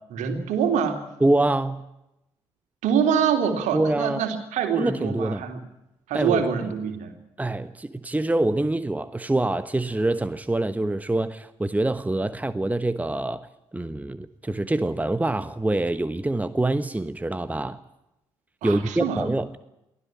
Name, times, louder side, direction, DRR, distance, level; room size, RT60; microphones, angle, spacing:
voice 1, 0.1-1.0 2.8-5.6 6.1-7.2 18.6-19.3, right 7 dB, 60° right, 5 dB, 3.3 m, -25 dB
voice 2, 1.2-1.8 3.7-4.2 4.8-5.4 6.1-6.4 7.4-17.8 18.6-19.6, right 2 dB, 10° right, 12 dB, 1.2 m, -25 dB
24.0 x 15.5 x 8.9 m, 0.87 s
figure-of-eight pair, 40°, 14 cm